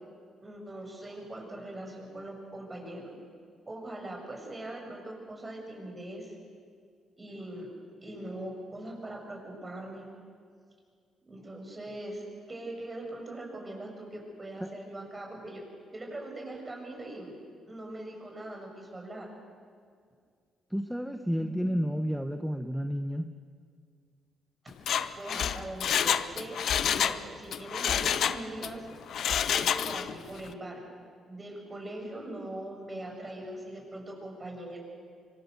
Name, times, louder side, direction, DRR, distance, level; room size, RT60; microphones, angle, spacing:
voice 1, 0.4-3.1 3.7-6.4 7.2-7.7 8.0-10.1 11.3-15.6 15.9-17.3 17.7-19.3 21.4-21.9 25.2-28.9 29.5-30.8 31.3-34.8, right 1 dB, 25° right, 1 dB, 6.8 m, -41 dB
voice 2, 20.7-23.2, equal, ahead, 7 dB, 1.0 m, -31 dB
Mechanisms, 24.7-27.2 27.5-28.7 29.1-30.2 30.5-30.6, left 9 dB, 65° left, 0.8 m, -28 dB
25.5 x 23.5 x 6.8 m, 2.1 s
cardioid pair, 90°, 0 cm